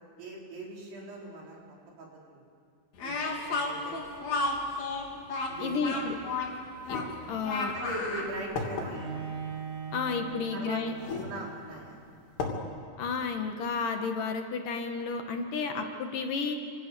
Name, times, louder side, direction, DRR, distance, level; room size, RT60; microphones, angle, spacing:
voice 1, 0.2-1.6 2.0-2.4 3.0-4.6 5.5-6.1 7.7-9.3 10.5-10.8 11.1-12.2, right 2 dB, 85° right, -2 dB, 6.3 m, -41 dB
Speech, 3.0-8.3, left 3 dB, 45° left, 3.8 m, -32 dB
voice 2, 5.6-6.1 6.9-7.0 7.3-7.7 9.9-10.9 13.0-16.6, left 4 dB, 65° left, 5 dB, 2.7 m, -32 dB
sound 1, 6.9-7.1 7.9-8.0 8.6-8.9 10.1-10.2 11.0-11.3 11.8-11.9 12.4-12.6, left 4 dB, 85° left, 4.8 m, -34 dB
Bowed string instrument, 8.9-11.9, right 6 dB, 35° right, 3.6 m, -40 dB
28.5 x 26.0 x 6.9 m, 2.3 s
omnidirectional pair, 4.6 m